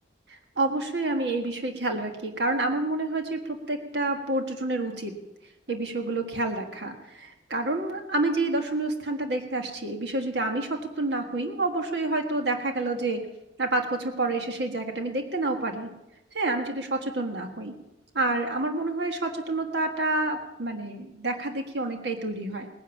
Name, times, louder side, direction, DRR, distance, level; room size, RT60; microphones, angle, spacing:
voice 1, 0.3-5.1 5.7-13.2 13.6-15.9 16.3-17.7 18.1-22.7, right 2 dB, 65° right, 4 dB, 1.6 m, -28 dB
18.5 x 11.0 x 7.1 m, 0.95 s
head